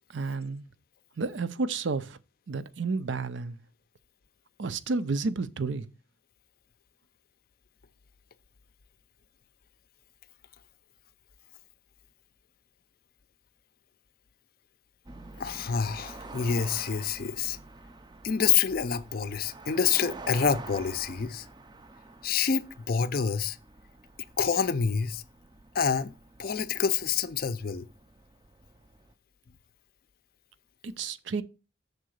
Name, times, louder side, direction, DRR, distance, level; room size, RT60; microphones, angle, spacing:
voice 1, 0.1-0.6 1.2-2.2 2.5-3.6 4.6-5.9 30.8-31.4, right 4 dB, 70° right, 0.6 m, -31 dB
sound 1, 15.0-29.1, right 3 dB, 20° right, 0.4 m, -47 dB
voice 2, 15.4-17.6 18.2-21.5 22.2-23.6 24.4-25.2 25.7-26.1 26.4-27.9, left 6 dB, 50° left, 0.5 m, -27 dB
6.7 x 3.8 x 6.4 m
head